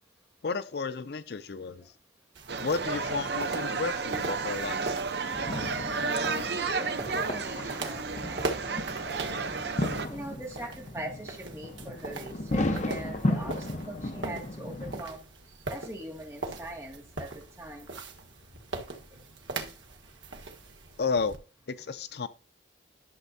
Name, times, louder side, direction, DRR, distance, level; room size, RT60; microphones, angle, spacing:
voice 1, 0.4-1.9 2.6-4.9 21.0-21.4 21.7-22.3, left 4 dB, 60° left, 0.5 m, -32 dB
sound 1, 2.4-21.4, right 3 dB, 90° right, 1.4 m, -41 dB
sound 2, 2.5-10.1, right 4 dB, 60° right, 0.8 m, -32 dB
sound 3, 5.3-15.0, left 1 dB, 40° left, 0.9 m, -35 dB
voice 2, 6.0-9.5 10.1-15.2 15.7-17.9 19.1-19.2, right 1 dB, 15° right, 2.1 m, -42 dB
11.5 x 7.1 x 2.7 m
head